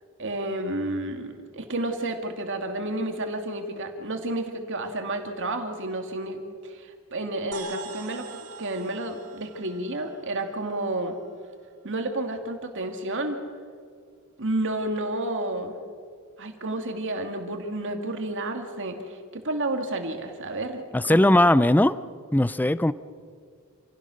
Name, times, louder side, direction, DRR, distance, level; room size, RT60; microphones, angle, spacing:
voice 1, 0.2-11.2 11.8-13.4 14.4-15.8 16.4-21.3, right 1 dB, 60° right, 5 dB, 2.4 m, -31 dB
sound 1, 7.5-11.3, right 3 dB, 85° right, 2.1 m, -43 dB
voice 2, 20.9-21.9 22.3-22.9, left 1 dB, 10° left, 16 dB, 0.5 m, -19 dB
27.5 x 16.0 x 6.4 m, 2.1 s
head